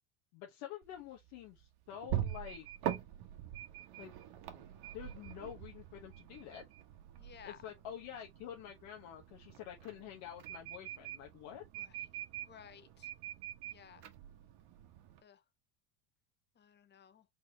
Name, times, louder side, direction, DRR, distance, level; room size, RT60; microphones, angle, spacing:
voice 1, 0.3-2.7 3.9-4.1 4.5-4.7 4.9-6.6 7.4-11.6, left 10 dB, 70° left, 1.2 m, -48 dB
sound 1, 0.8-15.2, right 11 dB, 60° right, 1.4 m, -44 dB
voice 2, 7.1-7.6 11.8-11.9 12.4-13.1 13.7-14.0 15.2-15.4 16.6-17.2, left 8 dB, 25° left, 0.8 m, -56 dB
4.2 x 4.1 x 2.8 m
supercardioid pair, 95°, 43 cm